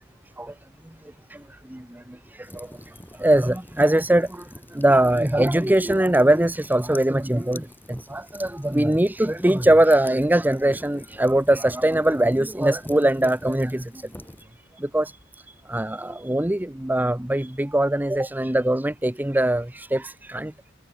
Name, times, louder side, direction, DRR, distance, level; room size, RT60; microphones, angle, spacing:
voice 1, 1.7-2.0 2.3-2.7 3.2-4.4 4.7-13.9 14.8-15.1 15.5-20.5, right 1 dB, 10° right, 0.8 m, -21 dB
sound 1, 2.4-14.4, left 1 dB, 10° left, 5.2 m, -45 dB
head